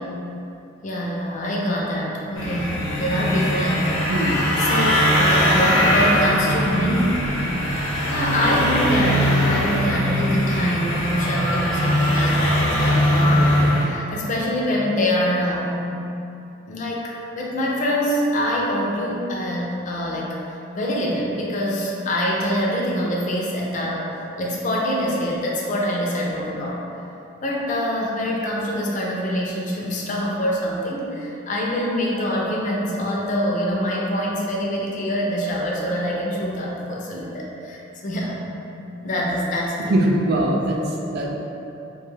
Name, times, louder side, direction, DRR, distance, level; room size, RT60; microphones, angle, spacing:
voice 1, 0.8-4.1 4.6-7.6 8.1-15.8 16.7-20.4 20.7-24.1 24.4-26.8 27.4-38.4 39.0-39.9, equal, 40° left, -3 dB, 0.4 m, -24 dB
sound 1, 2.3-13.8, equal, 70° left, 0.7 m, -21 dB
voice 2, 4.1-4.4 39.9-41.3, right 1 dB, 50° right, 0 dB, 0.3 m, -21 dB
2.4 x 2.3 x 3.1 m, 2.8 s
head